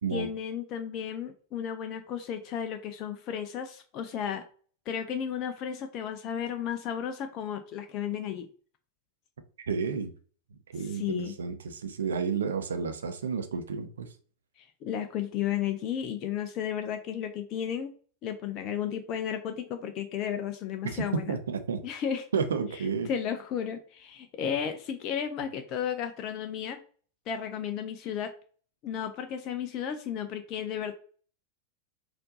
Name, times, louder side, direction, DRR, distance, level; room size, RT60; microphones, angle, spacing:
voice 1, 0.1-4.4 4.9-8.5 10.9-11.3 14.6-17.9 18.2-21.3 21.8-22.2 23.1-26.8 27.3-28.3 28.8-30.9, left 8 dB, 40° left, 0.4 m, -33 dB
voice 2, 9.6-10.1 10.7-14.1 20.8-21.8 22.3-23.1, right 5 dB, 65° right, 0.6 m, -31 dB
4.4 x 2.5 x 3.7 m
figure-of-eight pair, 90°, 0 cm